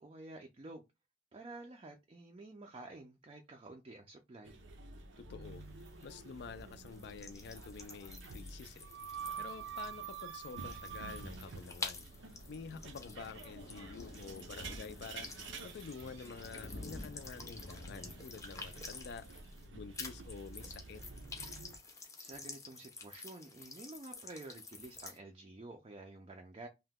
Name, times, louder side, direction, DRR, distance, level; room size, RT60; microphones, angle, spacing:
voice 1, 0.0-0.8 1.3-4.6 22.2-26.7, right 2 dB, 30° right, 0.4 m, -50 dB
sound 1, 4.4-21.8, right 5 dB, 80° right, 0.5 m, -49 dB
voice 2, 5.2-5.6 6.0-12.1 12.5-19.3 19.7-21.0, left 5 dB, 65° left, 0.4 m, -49 dB
sound 2, 5.4-19.7 19.9-25.2, left 4 dB, 20° left, 0.6 m, -50 dB
Thunder, 11.2-20.6 20.9-21.2 21.5-21.6 21.8-21.9, left 1 dB, 80° left, 0.7 m, -52 dB
2.8 x 2.1 x 3.5 m
head